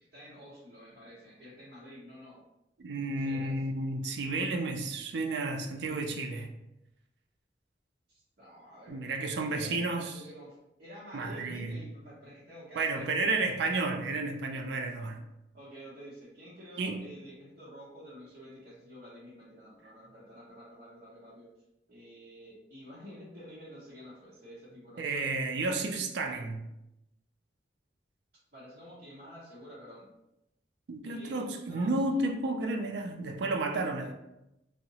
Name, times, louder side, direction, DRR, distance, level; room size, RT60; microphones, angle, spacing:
voice 1, 0.0-2.4 3.0-3.5 8.1-9.1 9.5-13.2 15.5-21.5 21.9-25.3 28.5-30.1 31.0-32.3, equal, 55° right, 0.7 m, -49 dB
voice 2, 2.8-6.5 8.9-10.2 11.1-11.8 12.8-15.2 16.8-17.0 25.0-26.6 30.9-34.1, right 2 dB, 70° right, 0.4 m, -32 dB
2.7 x 2.0 x 2.7 m
head